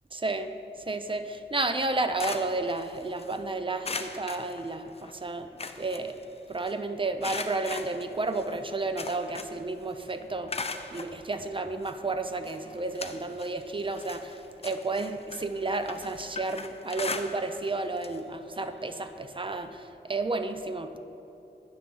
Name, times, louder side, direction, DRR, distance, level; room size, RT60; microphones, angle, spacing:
voice 1, 0.1-5.5 5.8-6.2 6.5-21.0, right 3 dB, 30° right, 8 dB, 0.4 m, -32 dB
sound 1, 1.8-3.4 3.8-5.1 5.4-6.7 7.2-9.7 10.0-11.1 11.8-11.9 12.4-13.6 13.9-17.7 18.0-18.2 18.6-18.7 19.9-20.0, left 3 dB, 35° left, 0.4 m, -39 dB
9.4 x 3.4 x 6.2 m, 2.8 s
wide cardioid pair, 60°, 19 cm